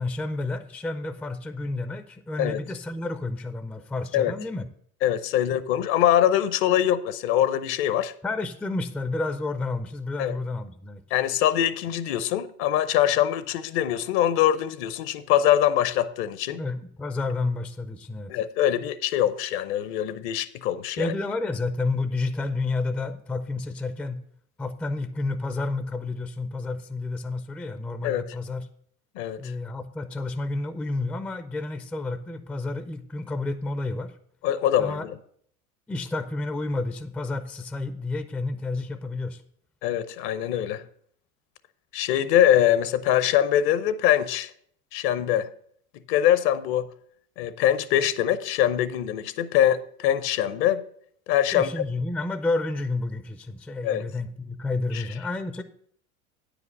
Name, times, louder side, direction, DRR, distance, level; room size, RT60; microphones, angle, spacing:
voice 1, 0.0-4.7 8.2-11.0 16.6-18.3 21.0-24.2 24.6-28.7 29.4-34.1 34.8-35.0 35.9-39.4 51.5-55.6, left 3 dB, 5° left, 0.4 m, -30 dB
voice 2, 5.0-8.1 10.2-10.4 11.1-16.6 18.3-21.1 28.0-28.2 29.1-29.5 34.4-35.2 39.8-40.8 41.9-44.5 44.9-45.5 46.1-46.9 47.4-50.8 51.3-51.7 53.8-54.0 54.9-55.0, left 11 dB, 55° left, 0.8 m, -23 dB
9.3 x 5.1 x 6.3 m
hypercardioid pair, 85°, 42 cm